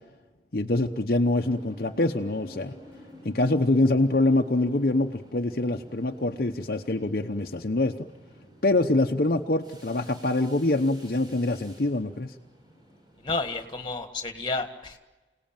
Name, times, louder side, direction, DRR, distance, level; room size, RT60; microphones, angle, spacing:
voice 1, 0.5-2.7 3.2-7.9 8.6-12.3, left 2 dB, 55° left, 3 dB, 0.9 m, -25 dB
sound 1, 1.3-13.9, equal, 25° right, 4.5 m, -51 dB
voice 2, 13.2-15.0, left 3 dB, 25° left, 7 dB, 1.8 m, -31 dB
28.5 x 18.5 x 9.1 m, 1.2 s
head